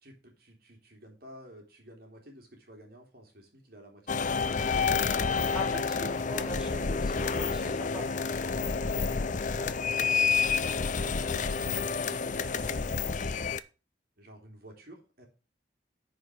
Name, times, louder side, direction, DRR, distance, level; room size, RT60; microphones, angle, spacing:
voice 1, 0.0-5.5 10.8-13.5 14.2-15.3, equal, 60° right, 1 dB, 3.1 m, -51 dB
sound 1, 4.1-13.6, left 5 dB, 45° left, 0.6 m, -29 dB
voice 2, 5.5-8.2, equal, 5° right, -3 dB, 3.8 m, -41 dB
9.9 x 5.2 x 7.1 m, 0.34 s
head